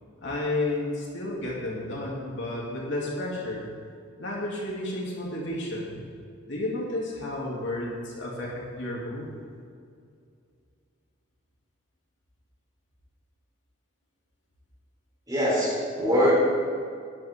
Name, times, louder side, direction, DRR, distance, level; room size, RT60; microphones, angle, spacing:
voice 1, 0.2-3.6 4.2-6.0 6.5-9.3, left 1 dB, 60° left, -4 dB, 3.2 m, -32 dB
voice 2, 15.3-16.3, equal, 20° right, -5 dB, 3.9 m, -23 dB
16.0 x 12.0 x 3.9 m, 2.3 s
head